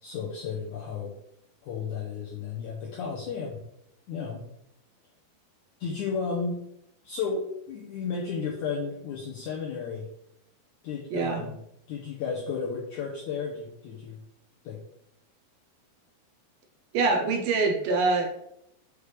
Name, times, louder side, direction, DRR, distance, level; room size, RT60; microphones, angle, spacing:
voice 1, 0.0-1.1 1.6-3.6 4.1-4.4 5.8-6.6 7.0-10.1 10.8-11.6 11.9-14.2 14.6-14.8, left 5 dB, 85° left, -1 dB, 1.7 m, -33 dB
voice 2, 11.1-11.5 16.9-18.3, right 3 dB, 75° right, 2 dB, 2.4 m, -24 dB
8.2 x 5.0 x 3.3 m, 0.78 s
omnidirectional pair, 4.7 m